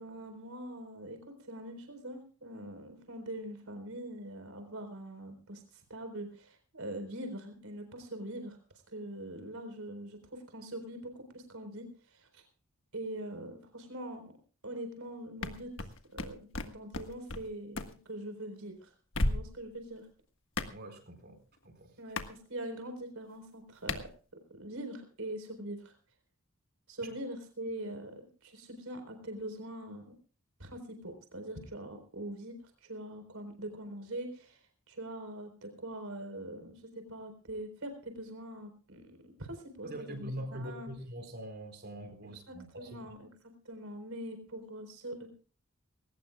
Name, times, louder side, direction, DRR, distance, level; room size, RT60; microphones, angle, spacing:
voice 1, 0.0-8.6 8.9-12.4 12.9-14.2 14.6-18.9 19.3-20.1 22.0-24.1 24.5-25.9 26.9-30.1 30.6-40.9 42.5-43.3 43.6-45.3, right 1 dB, 75° right, 6 dB, 4.2 m, -43 dB
sound 1, 15.4-17.4 17.7-17.9 19.1-19.7 20.6-20.7 22.2-22.3 23.9-24.1, left 2 dB, 60° left, 1.5 m, -33 dB
voice 2, 20.7-21.4 21.6-22.1 27.0-27.1 39.8-43.0, right 1 dB, 50° right, 6 dB, 4.1 m, -43 dB
21.0 x 19.0 x 2.3 m, 0.38 s
head